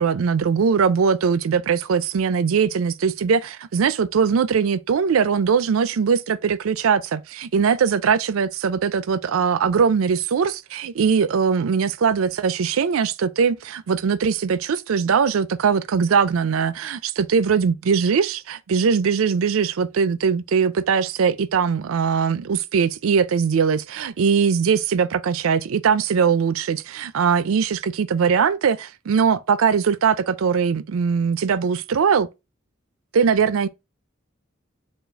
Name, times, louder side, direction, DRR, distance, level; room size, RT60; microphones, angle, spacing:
voice 1, 0.0-32.3 33.1-33.7, right 6 dB, 90° right, 0.4 m, -21 dB
5.6 x 2.4 x 3.9 m
head